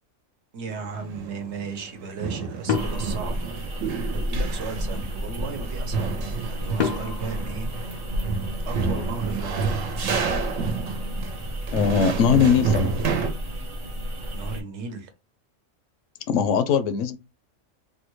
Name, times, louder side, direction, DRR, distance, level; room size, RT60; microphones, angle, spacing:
voice 1, 0.5-3.6 4.1-7.7 8.6-9.8 14.3-15.1, right 4 dB, 65° right, 1.0 m, -36 dB
sound 1, 0.7-1.9 2.2-13.3, right 5 dB, 85° right, 1.1 m, -30 dB
sound 2, 2.7-4.2 6.8-8.6, left 6 dB, 60° left, 0.4 m, -31 dB
sound 3, 2.7-14.6, equal, 45° right, 0.4 m, -32 dB
voice 2, 11.7-12.9 16.3-17.2, left 7 dB, 80° left, 0.9 m, -20 dB
3.5 x 2.2 x 3.0 m
omnidirectional pair, 1.3 m